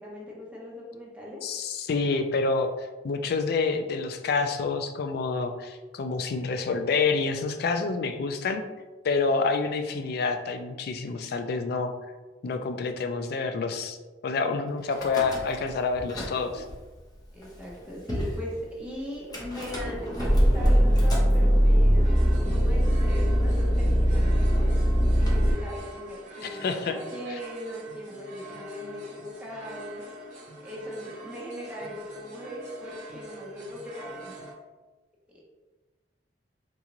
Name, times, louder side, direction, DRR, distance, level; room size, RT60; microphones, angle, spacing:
voice 1, 0.0-1.4 17.3-24.7 25.2-30.0 30.6-34.3 35.3-35.4, equal, 10° right, -5 dB, 0.9 m, -39 dB
voice 2, 1.4-8.6 9.0-11.9 12.4-14.0 14.2-16.6 26.5-27.0, left 4 dB, 60° left, 7 dB, 0.4 m, -28 dB
Car / Engine starting / Idling, 14.9-15.7 16.0-16.7 17.4-17.5 17.7-17.8 18.1-18.4 19.3-25.5, equal, 20° left, 0.7 m, -22 dB
sound 1, 22.0-34.5, right 1 dB, 45° right, 0.8 m, -45 dB
3.9 x 2.4 x 2.9 m, 1.2 s
head